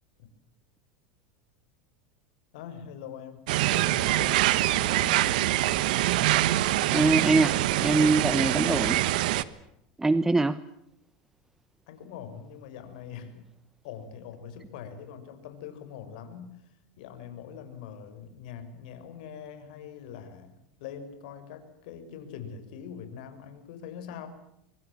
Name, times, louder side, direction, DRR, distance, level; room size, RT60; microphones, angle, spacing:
voice 1, 2.5-5.5 11.9-13.4 13.8-16.7 17.0-24.3, left 8 dB, 70° left, 9 dB, 5.8 m, -43 dB
sound 1, 3.5-9.4, right 15 dB, 75° right, 1.3 m, -24 dB
voice 2, 6.9-9.0 10.0-10.6, right 2 dB, 10° right, 15 dB, 0.9 m, -23 dB
25.0 x 24.0 x 7.4 m, 0.80 s
supercardioid pair, 110°, 5 cm